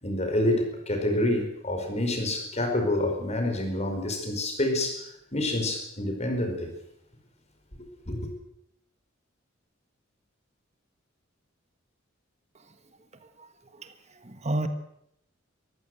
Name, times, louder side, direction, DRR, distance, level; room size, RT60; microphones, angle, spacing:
voice 1, 0.0-6.7 8.1-8.3, left 1 dB, 35° left, 5 dB, 4.8 m, -28 dB
voice 2, 13.4-13.9 14.2-14.7, right 2 dB, 35° right, 9 dB, 1.4 m, -32 dB
24.0 x 15.0 x 7.8 m, 0.76 s
head